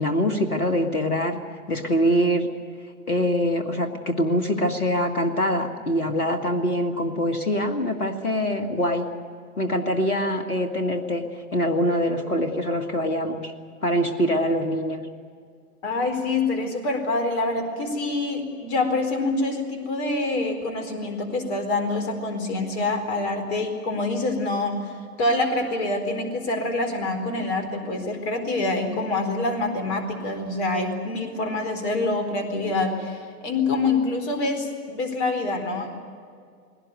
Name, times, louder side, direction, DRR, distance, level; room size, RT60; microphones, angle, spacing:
voice 1, 0.0-1.4 1.7-2.5 3.1-9.1 9.6-11.2 11.5-13.5 13.8-15.0, equal, 80° left, 5 dB, 1.9 m, -24 dB
voice 2, 15.8-35.9, left 2 dB, 45° left, 5 dB, 4.4 m, -26 dB
21.0 x 18.0 x 9.4 m, 2.2 s
figure-of-eight pair, 100°, 44 cm